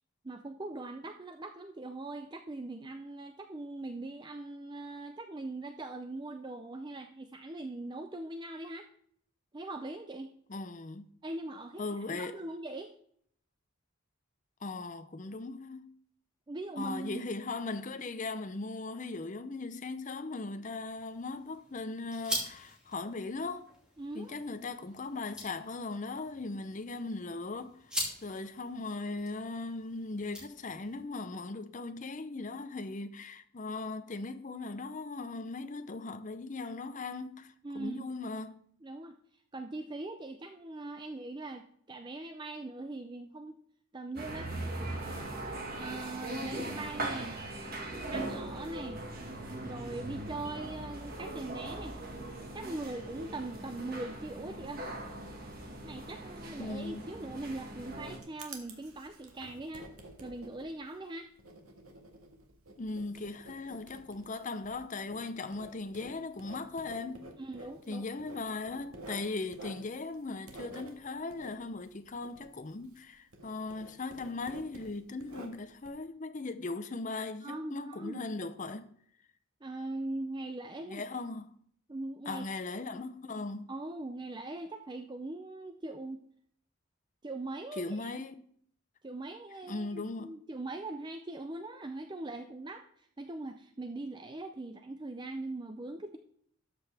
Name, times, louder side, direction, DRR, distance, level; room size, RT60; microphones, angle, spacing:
voice 1, 0.2-8.9 9.5-10.3 11.2-11.8 12.1-12.9 16.5-17.2 24.0-24.3 37.6-38.1 38.8-39.2 39.5-43.6 43.9-44.5 45.7-47.4 48.1-49.0 49.6-52.0 52.5-54.9 55.8-59.9 60.2-61.3 67.4-68.0 77.4-78.3 79.6-81.0 81.9-82.4 83.7-86.2 87.2-88.1 89.0-96.2, right 2 dB, 20° right, 0.4 m, -41 dB
voice 2, 10.5-11.1 11.8-12.4 14.6-15.9 16.8-23.7 24.1-27.9 28.2-38.6 56.6-57.1 62.8-67.3 67.9-78.9 80.9-81.5 82.3-83.7 87.8-88.4 89.7-90.4, left 3 dB, 35° left, 0.6 m, -38 dB
sound 1, 20.7-31.0, equal, 5° right, 2.5 m, -43 dB
sound 2, 44.2-58.2, right 1 dB, 40° right, 1.8 m, -40 dB
Writing, 57.7-73.1 73.3-75.9, right 1 dB, 80° right, 1.7 m, -50 dB
13.0 x 7.5 x 3.4 m
head